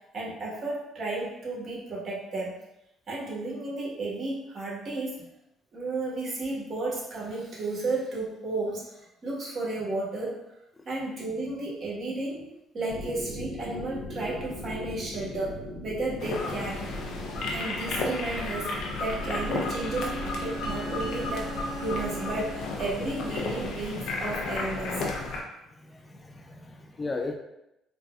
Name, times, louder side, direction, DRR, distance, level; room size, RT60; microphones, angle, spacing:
voice 1, 0.1-2.5 3.1-5.2 5.7-10.3 10.9-12.5 12.7-15.6 15.8-16.8 17.1-17.2 17.5-25.0, right 2 dB, 45° right, -5 dB, 1.2 m, -33 dB
sound 1, 12.9-21.3, left 1 dB, 45° left, 1.0 m, -40 dB
sound 2, 16.2-25.4, left 2 dB, 70° left, 0.6 m, -33 dB
Bowed string instrument, 19.0-22.9, right 2 dB, 5° right, 1.4 m, -39 dB
voice 2, 25.8-27.3, left 3 dB, 20° left, 3 dB, 0.3 m, -36 dB
4.0 x 2.2 x 2.3 m, 0.87 s
supercardioid pair, 80°, 0 cm